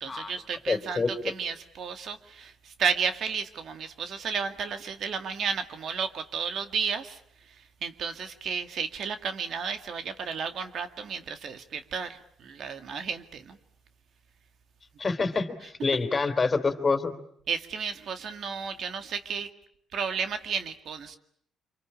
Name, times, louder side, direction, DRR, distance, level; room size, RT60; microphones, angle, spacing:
voice 1, 0.0-7.2 7.8-13.6 17.5-19.5 19.9-21.2, right 6 dB, 65° right, 8 dB, 2.0 m, -32 dB
voice 2, 0.7-1.1 15.0-17.1, left 4 dB, 30° left, 9 dB, 3.4 m, -26 dB
26.5 x 24.5 x 8.7 m, 0.68 s
cardioid pair, 90°, 0 cm